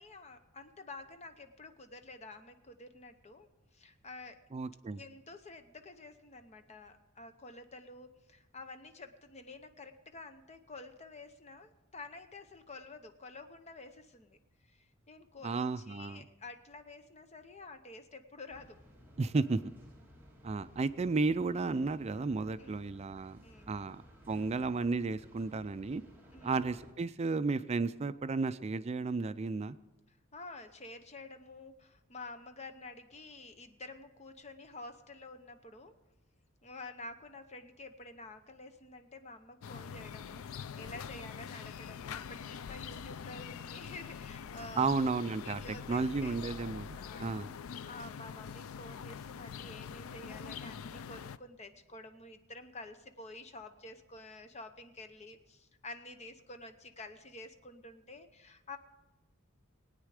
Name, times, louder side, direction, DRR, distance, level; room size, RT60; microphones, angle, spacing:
voice 1, 0.0-4.4 5.0-14.4 14.6-18.8 21.7-21.9 22.6-22.9 23.4-23.9 26.3-26.6 30.1-35.9 36.6-44.9 45.4-46.4 47.0-47.4 47.9-58.8, left 2 dB, 30° left, 9 dB, 0.8 m, -50 dB
voice 2, 4.5-5.0 15.4-16.2 19.2-19.7 20.4-23.4 23.7-24.0 24.3-26.0 26.4-29.8 44.7-45.6 45.9-47.5, right 3 dB, 30° right, 13 dB, 0.4 m, -33 dB
sound 1, 18.5-26.9, equal, 10° right, 1.8 m, -57 dB
sound 2, 39.6-51.4, left 7 dB, 80° left, 0.4 m, -44 dB
20.5 x 9.0 x 4.9 m, 1.1 s
head